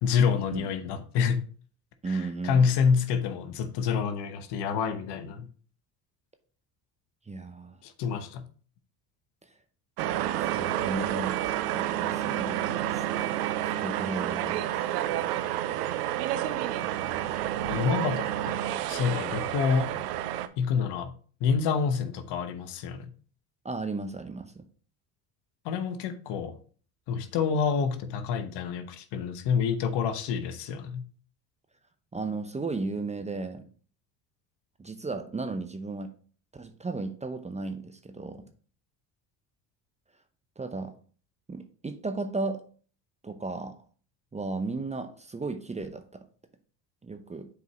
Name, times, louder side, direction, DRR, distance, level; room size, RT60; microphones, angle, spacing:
voice 1, 0.0-1.4 2.1-5.5 7.8-8.4 17.7-18.6 18.9-19.9 20.6-21.1 21.4-23.1 25.6-26.6 27.1-31.0, left 6 dB, 60° left, 1.0 m, -27 dB
voice 2, 2.0-2.7 7.3-7.8 10.3-13.0 13.6-14.8 23.6-24.6 32.1-33.7 34.8-36.1 36.5-38.5 40.6-40.9 41.5-42.6 43.2-43.8 44.3-46.3 47.0-47.5, right 3 dB, 15° right, 0.7 m, -35 dB
sound 1, 10.0-20.5, right 12 dB, 70° right, 0.7 m, -29 dB
7.9 x 4.8 x 3.0 m
hypercardioid pair, 65°, 47 cm